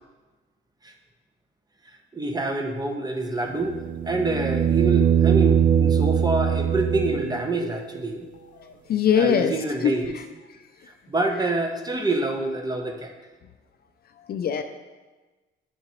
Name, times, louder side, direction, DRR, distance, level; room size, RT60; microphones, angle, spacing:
voice 1, 2.1-3.8 4.0-8.2 9.2-10.1 11.1-13.1, right 2 dB, 20° right, 3 dB, 0.8 m, -26 dB
sound 1, 3.5-7.6 10.0-10.1, right 8 dB, 45° right, 0.5 m, -21 dB
voice 2, 8.6-9.5 9.8-10.2 14.3-14.6, left 8 dB, 50° left, 9 dB, 0.4 m, -22 dB
9.4 x 3.7 x 3.0 m, 1.2 s
cardioid pair, 90°, 20 cm